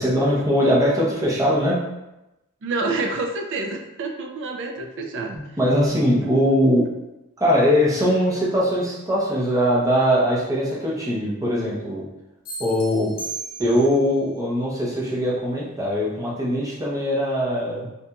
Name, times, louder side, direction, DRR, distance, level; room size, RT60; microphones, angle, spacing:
voice 1, 0.0-1.8 5.3-6.8 7.4-12.0 12.6-13.1 13.6-17.9, equal, 15° right, -5 dB, 0.6 m, -21 dB
voice 2, 2.6-5.4, right 3 dB, 60° right, 2 dB, 0.4 m, -28 dB
sound 1, 12.4-14.1, right 3 dB, 40° left, 0.5 m, -35 dB
2.8 x 2.5 x 2.2 m, 0.95 s
head